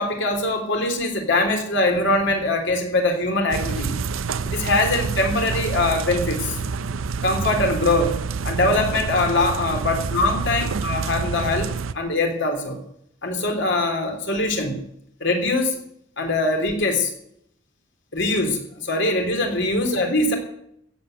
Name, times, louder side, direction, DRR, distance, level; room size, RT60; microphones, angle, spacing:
voice 1, 0.0-4.0 4.4-6.6 7.2-12.8 13.2-14.8 15.2-15.8 16.2-17.1 18.1-20.4, left 2 dB, 60° left, 3 dB, 3.3 m, -22 dB
sound 1, 3.5-11.9, right 5 dB, 80° right, 0.6 m, -27 dB
16.0 x 7.9 x 7.8 m, 0.72 s
head